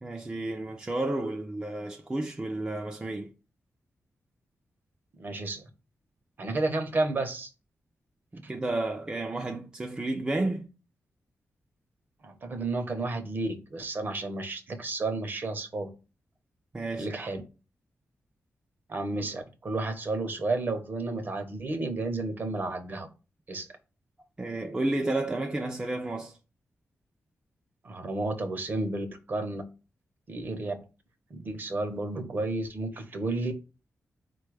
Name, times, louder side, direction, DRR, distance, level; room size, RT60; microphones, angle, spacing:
voice 1, 0.0-3.3 8.3-10.7 16.7-17.3 24.4-26.4, right 2 dB, 15° right, 0.4 m, -31 dB
voice 2, 5.2-5.6 6.4-7.5 12.2-15.9 17.0-17.4 18.9-23.1 23.5-23.7 27.8-29.6 30.3-30.7 31.3-33.5, right 2 dB, 40° right, 0.7 m, -32 dB
4.4 x 2.3 x 4.7 m
wide cardioid pair, 150°, 5 cm